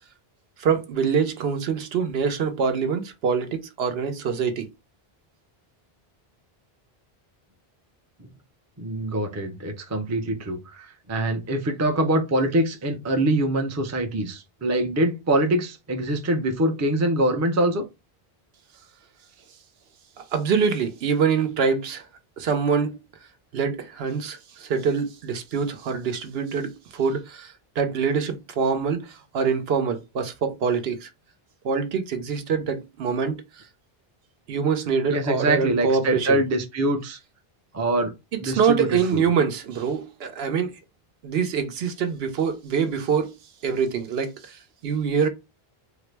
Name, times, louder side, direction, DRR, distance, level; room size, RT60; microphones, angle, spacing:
voice 1, 0.6-4.7 20.3-22.0 22.4-22.9 23.5-31.1 31.6-33.3 34.5-36.4 38.4-40.7 41.2-43.3 43.6-44.6 44.8-45.3, right 6 dB, 75° right, 0.9 m, -25 dB
voice 2, 8.8-17.8 35.1-37.2 37.7-38.1 38.4-39.3, right 1 dB, 20° right, 0.4 m, -24 dB
3.6 x 2.0 x 3.2 m
omnidirectional pair, 1.0 m